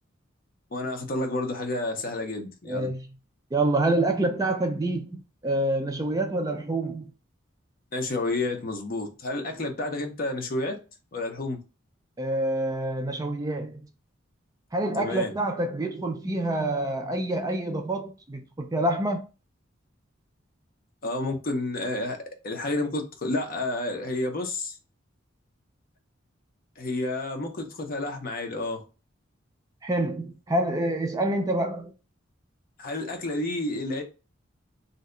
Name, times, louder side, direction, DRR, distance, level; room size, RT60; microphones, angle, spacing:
voice 1, 0.7-2.9 7.9-10.8 11.1-11.6 15.0-15.3 21.0-22.2 22.4-24.8 26.8-28.8 32.8-34.0, left 2 dB, 45° left, 0.6 m, -30 dB
voice 2, 2.7-3.1 3.5-7.1 12.2-13.8 14.7-19.3 29.8-31.9, right 1 dB, 20° right, 0.3 m, -27 dB
2.7 x 2.1 x 3.6 m
head